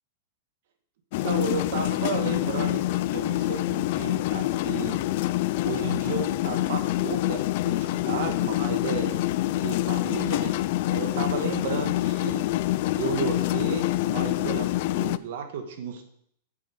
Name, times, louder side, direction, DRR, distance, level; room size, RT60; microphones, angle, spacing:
sound 1, 1.1-15.2, left 16 dB, 40° left, 0.3 m, -26 dB
voice 1, 1.2-5.0 5.6-9.2 9.6-10.5 10.9-12.4 13.0-16.1, right 6 dB, 55° right, 6 dB, 1.8 m, -33 dB
9.7 x 7.1 x 6.3 m, 0.66 s
supercardioid pair, 175°, 0 cm